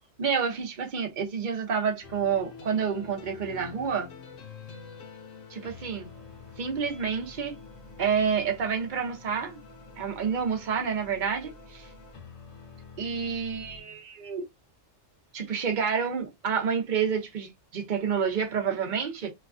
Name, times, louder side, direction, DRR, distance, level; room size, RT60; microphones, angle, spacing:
voice 1, 0.2-4.1 5.5-6.1 6.6-7.6 8.0-9.6 10.0-11.9 13.0-14.5 15.3-19.3, right 6 dB, 45° right, 0.8 m, -29 dB
sound 1, 2.0-13.8, left 5 dB, 90° left, 1.1 m, -47 dB
3.0 x 2.3 x 2.4 m
omnidirectional pair, 1.3 m